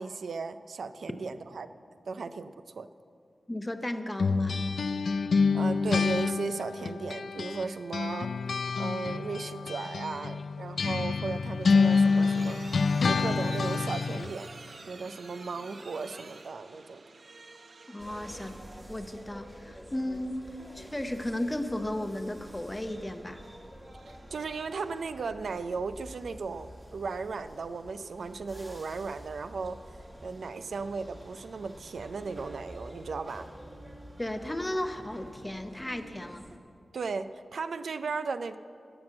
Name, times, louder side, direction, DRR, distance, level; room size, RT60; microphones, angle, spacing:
voice 1, 0.0-1.7 2.1-2.9 5.5-8.3 8.8-12.6 13.0-14.5 14.8-17.0 24.1-29.8 30.2-33.5 36.9-38.6, right 4 dB, 75° right, 11 dB, 0.4 m, -36 dB
voice 2, 3.5-4.7 17.9-18.6 18.9-20.5 20.7-23.4 34.2-36.5, left 1 dB, 15° left, 8 dB, 0.7 m, -34 dB
sound 1, 4.2-7.7 7.9-14.3, left 4 dB, 70° left, 0.4 m, -27 dB
sound 2, 11.2-18.8, right 3 dB, 55° right, 0.8 m, -49 dB
sound 3, 18.0-36.6, equal, 20° right, 1.3 m, -49 dB
18.0 x 6.1 x 7.6 m, 2.4 s
wide cardioid pair, 110°, 0 cm